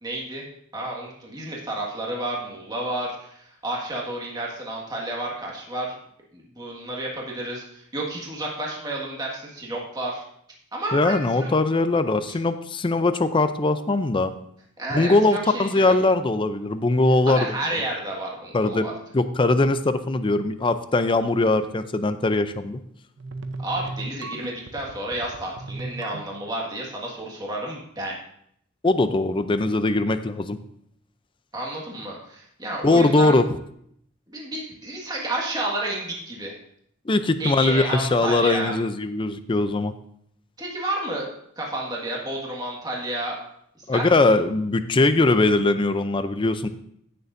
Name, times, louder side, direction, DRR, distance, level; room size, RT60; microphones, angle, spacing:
voice 1, 0.0-0.4 0.7-6.0 6.3-10.2 10.7-11.5 12.3-12.4 14.8-15.9 17.3-18.9 23.6-28.2 31.5-33.4 34.3-36.6 37.4-38.7 40.6-41.3 41.6-43.4 43.9-44.1, right 1 dB, 20° right, -3 dB, 1.8 m, -31 dB
voice 2, 10.9-14.3 14.9-17.5 18.5-18.9 19.1-22.8 28.8-30.6 32.8-33.5 37.1-39.9 43.9-46.7, left 2 dB, 25° left, 10 dB, 0.5 m, -21 dB
sound 1, 23.2-26.6, right 2 dB, 65° right, 0.7 m, -36 dB
16.0 x 6.7 x 2.6 m, 0.69 s
head